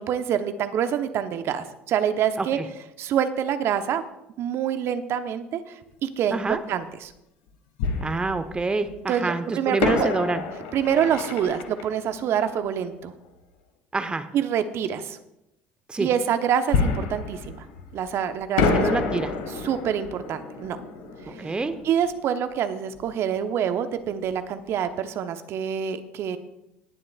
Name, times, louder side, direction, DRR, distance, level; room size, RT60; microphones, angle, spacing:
voice 1, 0.0-2.6 3.0-4.0 4.4-6.4 6.7-7.1 9.1-10.1 10.7-13.1 14.3-15.2 16.0-17.6 17.9-19.0 19.6-20.8 21.3-21.5 21.8-26.4, right 9 dB, 50° right, 9 dB, 1.0 m, -26 dB
voice 2, 6.3-6.6 8.0-10.4 13.9-14.3 15.9-16.1 18.6-19.3 21.3-21.9, right 3 dB, 15° right, 11 dB, 0.8 m, -27 dB
Fireworks, 6.5-6.6 7.8-8.9 9.8-13.3 16.7-18.2 18.6-23.1 23.4-23.5 24.0-24.2, left 4 dB, 70° left, 1.8 m, -29 dB
19.0 x 11.0 x 2.4 m, 0.86 s
figure-of-eight pair, 60°, 6 cm